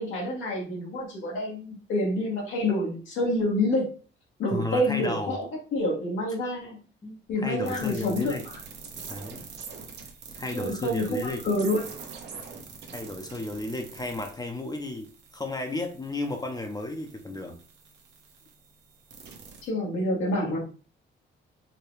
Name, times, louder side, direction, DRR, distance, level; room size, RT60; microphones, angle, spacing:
voice 1, 0.0-3.9 4.4-6.8 7.3-8.3 10.5-11.8 19.6-20.6, left 1 dB, 90° left, -3 dB, 1.4 m, -27 dB
voice 2, 4.5-5.4 7.0-8.4 9.1-9.4 10.4-11.4 12.9-17.6, left 2 dB, 20° left, 4 dB, 0.6 m, -33 dB
sound 1, 7.6-19.7, right 5 dB, 60° right, 0.9 m, -45 dB
4.7 x 2.2 x 3.1 m, 0.37 s
cardioid pair, 90°, 20 cm